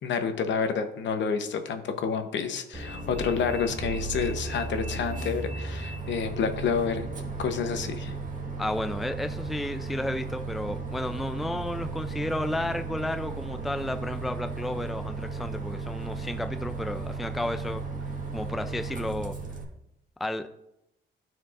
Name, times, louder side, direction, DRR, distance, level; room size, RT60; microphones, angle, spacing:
voice 1, 0.0-7.1 7.4-8.2, left 6 dB, 65° left, 7 dB, 0.9 m, -29 dB
Bus, 2.7-19.6, right 3 dB, 40° right, 1.5 m, -35 dB
voice 2, 8.6-17.8 18.3-19.4 20.2-20.5, left 1 dB, ahead, 8 dB, 0.3 m, -32 dB
12.5 x 4.6 x 2.5 m, 0.84 s
cardioid pair, 90°, 20 cm